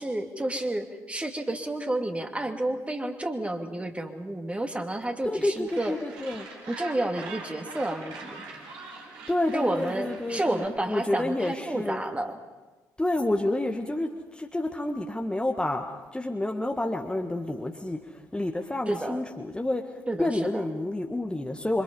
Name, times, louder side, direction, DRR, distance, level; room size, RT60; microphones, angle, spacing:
voice 1, 0.0-6.0 6.7-8.4 9.5-12.4 18.9-19.2 20.1-20.6, right 1 dB, 15° right, 5 dB, 2.6 m, -30 dB
voice 2, 5.2-6.5 9.3-12.0 13.0-15.9 16.1-21.8, left 1 dB, 10° left, 3 dB, 1.8 m, -29 dB
Gull seagull, 5.7-10.7, right 4 dB, 65° right, 4.2 m, -43 dB
27.0 x 25.5 x 5.6 m, 1.2 s
figure-of-eight pair, 45°, 9 cm